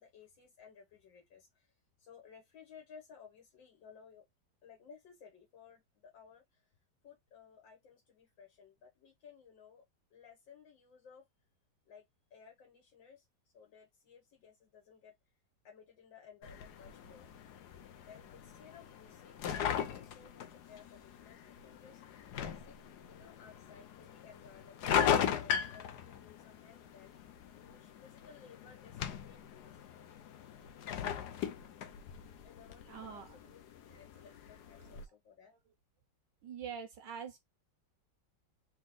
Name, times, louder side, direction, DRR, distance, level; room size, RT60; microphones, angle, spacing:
voice 1, 0.0-1.7 2.0-4.2 4.6-6.6 7.0-9.8 10.1-11.3 11.9-12.0 12.3-13.3 13.5-15.1 15.6-17.3 18.1-22.0 22.7-22.8 23.1-29.8 30.8-31.4 32.4-35.5, left 6 dB, 80° left, 2.0 m, -58 dB
sound 1, 16.4-35.0, left 8 dB, 65° left, 1.3 m, -39 dB
voice 2, 32.9-33.5 33.9-34.3 34.8-35.0 35.5-35.6 36.4-37.4, right 7 dB, 70° right, 1.4 m, -46 dB
4.3 x 3.1 x 3.7 m
omnidirectional pair, 2.0 m